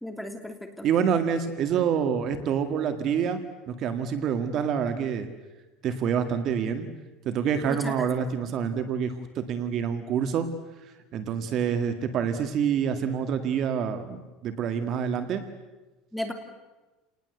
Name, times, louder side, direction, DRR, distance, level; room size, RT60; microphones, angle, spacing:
voice 1, 0.0-0.9 7.7-8.1 16.1-16.3, left 1 dB, ahead, 5 dB, 2.9 m, -35 dB
voice 2, 0.8-3.4 3.7-5.3 5.8-6.9 7.2-10.5 11.1-15.4, right 7 dB, 45° right, 9 dB, 1.9 m, -27 dB
29.0 x 19.5 x 8.0 m, 1.1 s
cardioid pair, 150°, 0 cm